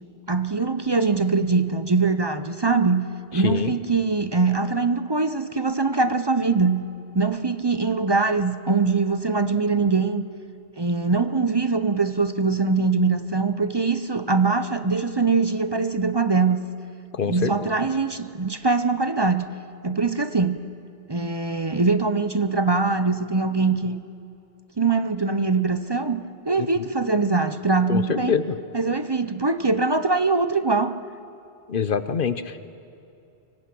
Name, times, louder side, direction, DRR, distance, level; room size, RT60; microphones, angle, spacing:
voice 1, 0.3-3.0 3.3-6.8 7.1-10.2 10.8-16.6 17.3-19.5 19.8-20.6 21.1-24.0 24.8-26.2 26.5-28.4 28.7-30.9, right 4 dB, 25° right, 10 dB, 0.6 m, -22 dB
voice 2, 3.3-3.7 17.1-17.5 26.6-26.7 27.9-28.6 31.7-32.6, left 6 dB, 55° left, 12 dB, 0.9 m, -25 dB
24.5 x 24.5 x 6.1 m, 2.6 s
omnidirectional pair, 1.1 m